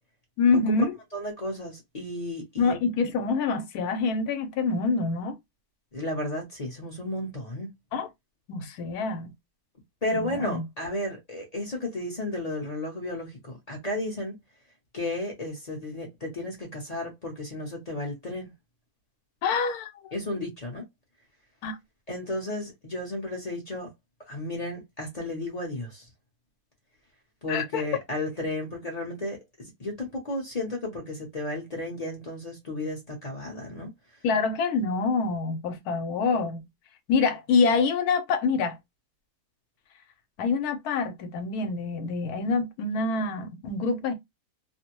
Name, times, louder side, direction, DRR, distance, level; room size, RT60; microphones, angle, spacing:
voice 1, 0.4-0.9 2.6-5.4 7.9-8.1 8.5-9.3 10.2-10.6 19.4-20.1 21.6-21.8 27.5-27.8 34.2-36.7 37.1-38.8 40.4-44.1, left 4 dB, 80° left, 1.1 m, -26 dB
voice 2, 1.1-2.8 5.9-7.7 10.0-14.3 14.9-18.5 20.1-20.8 22.1-23.9 24.3-26.1 27.4-33.9, left 1 dB, 35° left, 0.6 m, -33 dB
2.6 x 2.0 x 2.8 m
omnidirectional pair, 1.6 m